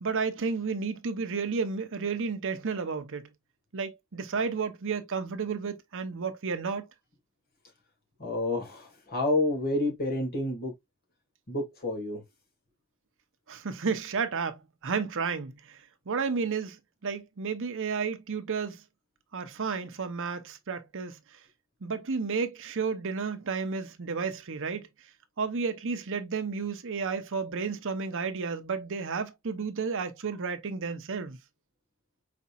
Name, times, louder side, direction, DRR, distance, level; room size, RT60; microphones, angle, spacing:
voice 1, 0.0-3.3 3.7-6.8 13.5-15.8 16.1-18.8 19.3-21.2 21.8-24.9 25.4-31.4, right 5 dB, 60° right, 0.8 m, -32 dB
voice 2, 8.2-10.7 11.5-12.2, left 2 dB, 45° left, 2.2 m, -29 dB
5.0 x 4.1 x 2.4 m
head